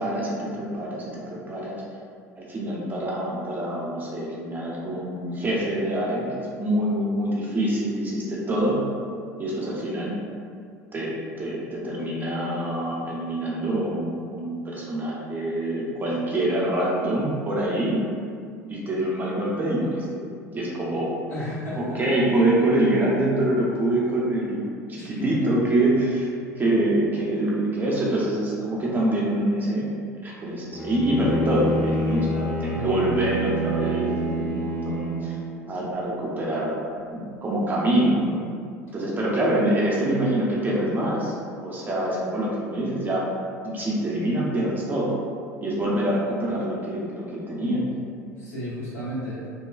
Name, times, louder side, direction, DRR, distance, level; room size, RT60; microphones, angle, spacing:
voice 1, 0.0-1.8 2.4-8.8 9.4-10.1 10.9-18.0 18.7-20.3 20.5-21.2 21.7-26.3 26.6-35.4 35.7-36.8 37.1-38.4 38.9-41.3 41.6-43.3 43.6-45.1 45.6-47.9, right 1 dB, 20° right, -5 dB, 0.6 m, -25 dB
voice 2, 21.3-22.0 25.0-25.5 32.6-33.1 47.6-48.0 48.4-49.4, equal, 70° left, -10 dB, 1.1 m, -33 dB
Bowed string instrument, 30.7-35.6, right 1 dB, 20° left, 0.7 m, -27 dB
2.9 x 2.2 x 2.3 m, 2.2 s
figure-of-eight pair, 70°, 9 cm